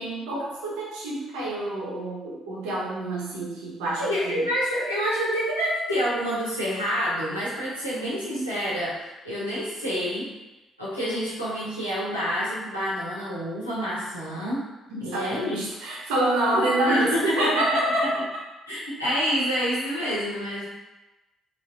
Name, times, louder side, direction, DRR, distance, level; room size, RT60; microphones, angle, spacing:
voice 1, 0.0-4.4 7.9-8.4 14.9-18.1, right 1 dB, 65° right, -5 dB, 0.6 m, -27 dB
voice 2, 4.0-10.3 10.8-14.6 15.0-15.6 16.9-17.6 18.7-20.7, equal, 90° left, -11 dB, 0.7 m, -28 dB
3.0 x 2.0 x 2.2 m, 1.1 s
figure-of-eight pair, 45°, 0 cm